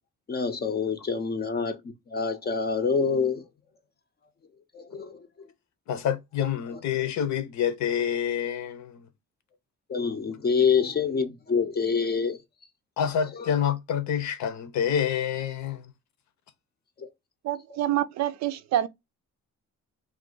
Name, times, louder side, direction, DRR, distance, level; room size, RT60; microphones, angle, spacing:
voice 1, 0.3-1.8 2.1-3.4 4.7-5.2 9.9-12.4 17.0-17.1, left 5 dB, 35° left, 0.6 m, -26 dB
voice 2, 5.9-9.1 13.0-15.9, left 8 dB, 70° left, 0.7 m, -27 dB
voice 3, 17.4-18.9, right 12 dB, 65° right, 0.5 m, -27 dB
2.5 x 2.3 x 3.7 m
cardioid pair, 90°, 30 cm